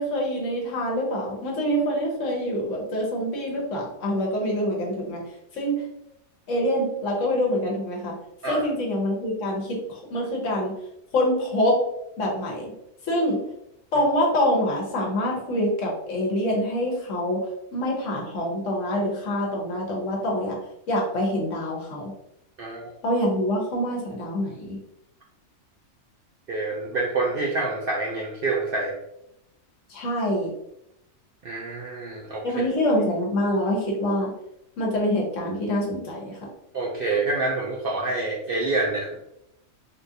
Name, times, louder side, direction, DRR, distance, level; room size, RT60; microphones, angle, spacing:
voice 1, 0.0-5.2 5.6-5.8 6.5-8.2 8.5-9.8 10.1-10.7 11.1-11.8 12.2-12.7 13.1-13.4 13.9-17.4 17.7-20.6 20.9-22.1 23.0-24.8 29.9-30.5 32.4-34.3 34.8-36.4, equal, 65° left, -2 dB, 1.2 m, -25 dB
voice 2, 22.6-22.9 26.5-29.0 31.4-32.4 36.7-39.2, right 3 dB, 60° right, -3 dB, 0.6 m, -27 dB
3.7 x 2.4 x 2.7 m, 0.81 s
omnidirectional pair, 1.4 m